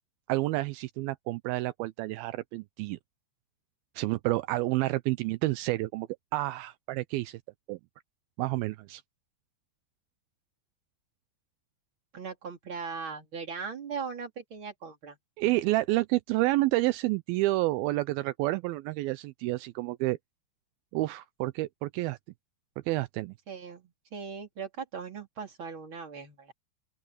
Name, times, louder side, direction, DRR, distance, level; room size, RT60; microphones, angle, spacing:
voice 1, 0.3-3.0 4.0-7.4 7.7-7.8 8.4-9.0 15.4-20.2 20.9-22.2 22.9-23.3, right 19 dB, 80° right, 2.2 m, -29 dB
voice 2, 12.1-15.2 23.5-26.5, right 5 dB, 30° right, 4.1 m, -39 dB
open air
omnidirectional pair, 4.9 m